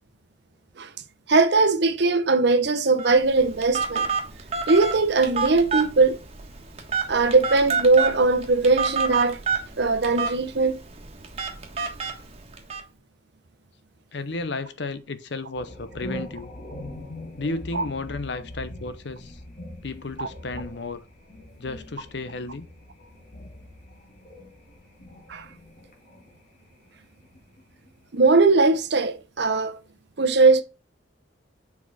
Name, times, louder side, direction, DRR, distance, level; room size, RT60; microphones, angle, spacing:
voice 1, 1.3-4.1 4.7-6.2 7.1-9.4 9.8-10.8 17.7-17.8 20.2-20.3 25.3-25.5 28.1-29.8 30.2-30.6, right 3 dB, 65° right, 0.9 m, -20 dB
Telephone, 3.0-12.8, right 5 dB, 35° right, 1.5 m, -29 dB
voice 2, 14.1-16.5 17.4-19.4 19.8-21.0 21.6-22.7, left 3 dB, 65° left, 0.8 m, -33 dB
sound 1, 15.5-26.4 26.7-27.9, left 1 dB, 45° left, 2.0 m, -42 dB
6.8 x 4.8 x 4.1 m
head